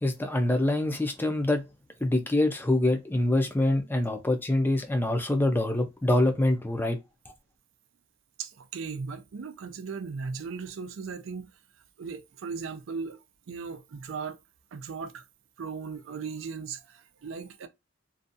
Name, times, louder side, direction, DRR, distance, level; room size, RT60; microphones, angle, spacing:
voice 1, 0.0-1.6 2.0-7.0, left 1 dB, 10° left, 0.4 m, -25 dB
voice 2, 8.4-11.5 12.0-13.2 13.5-14.4 14.7-15.2 15.6-17.7, right 5 dB, 90° right, 0.4 m, -37 dB
2.6 x 2.3 x 2.5 m
head